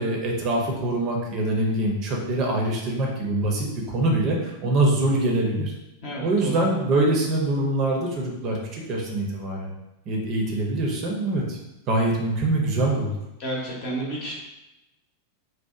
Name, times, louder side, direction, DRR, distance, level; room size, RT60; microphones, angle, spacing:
voice 1, 0.0-5.7 6.2-9.7 10.1-11.6 11.9-13.1, right 2 dB, 35° right, -1 dB, 0.5 m, -24 dB
voice 2, 6.0-6.6 13.4-14.3, right 1 dB, 45° left, -4 dB, 0.8 m, -31 dB
2.8 x 2.1 x 2.4 m, 0.94 s
figure-of-eight pair, 90°, 0 cm